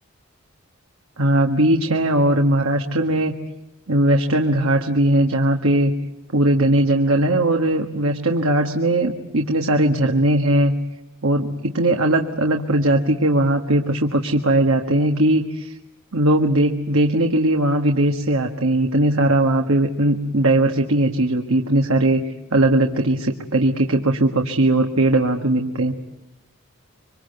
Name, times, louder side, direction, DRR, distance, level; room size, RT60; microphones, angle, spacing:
voice 1, 1.2-3.3 3.9-5.9 6.3-10.7 11.2-15.7 16.1-25.9, right 1 dB, 80° right, 3 dB, 1.6 m, -19 dB
26.0 x 24.5 x 8.0 m, 0.92 s
head